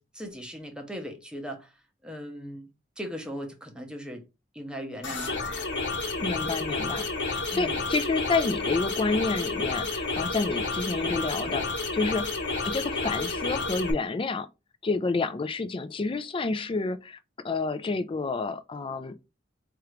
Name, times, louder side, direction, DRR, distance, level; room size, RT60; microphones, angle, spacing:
voice 1, 0.0-1.7 2.0-2.7 3.0-4.2 4.5-5.6 7.5-7.8, equal, 5° right, 0.7 m, -38 dB
sound 1, 5.0-13.9, left 3 dB, 70° left, 1.1 m, -30 dB
voice 2, 6.1-11.6 11.9-12.3 12.6-14.5 14.8-17.2 17.4-19.2, left 3 dB, 30° left, 0.4 m, -29 dB
4.5 x 2.5 x 3.1 m
head